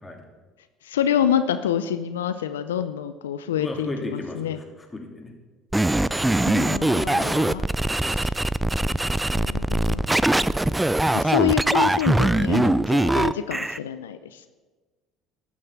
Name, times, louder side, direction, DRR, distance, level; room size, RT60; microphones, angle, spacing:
voice 1, 0.8-4.6 6.5-7.7 8.0-8.3 9.4-10.0 11.1-14.5, left 9 dB, 85° left, 11 dB, 0.5 m, -27 dB
voice 2, 3.6-5.3, left 2 dB, 20° left, 1 dB, 3.1 m, -34 dB
sound 1, 5.7-13.8, right 1 dB, 10° right, 0.4 m, -22 dB
12.5 x 7.4 x 7.3 m, 1.3 s
hypercardioid pair, 65°, 0 cm